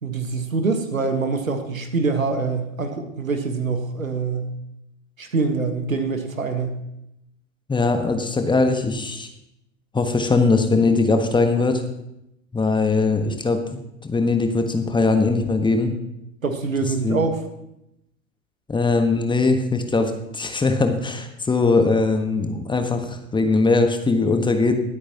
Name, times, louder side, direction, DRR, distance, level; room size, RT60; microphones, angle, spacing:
voice 1, 0.0-4.5 5.2-6.8 16.4-17.4, right 4 dB, 85° right, 7 dB, 1.4 m, -24 dB
voice 2, 7.7-9.3 9.9-11.8 12.5-13.6 14.0-15.9 17.0-17.2 18.7-24.7, left 3 dB, 10° left, 6 dB, 1.3 m, -20 dB
21.0 x 8.3 x 2.9 m, 0.83 s
figure-of-eight pair, 80°, 40 cm